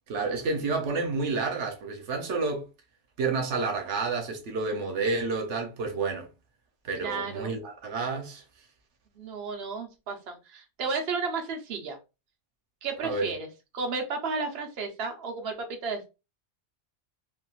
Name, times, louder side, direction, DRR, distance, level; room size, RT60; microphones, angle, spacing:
voice 1, 0.1-2.6 3.2-6.3 6.8-8.4 13.0-13.3, right 4 dB, 90° right, 1.1 m, -30 dB
voice 2, 7.0-7.5 9.2-12.0 12.8-13.5 13.7-16.1, right 4 dB, 65° right, 1.0 m, -33 dB
3.5 x 2.5 x 2.4 m
omnidirectional pair, 1.2 m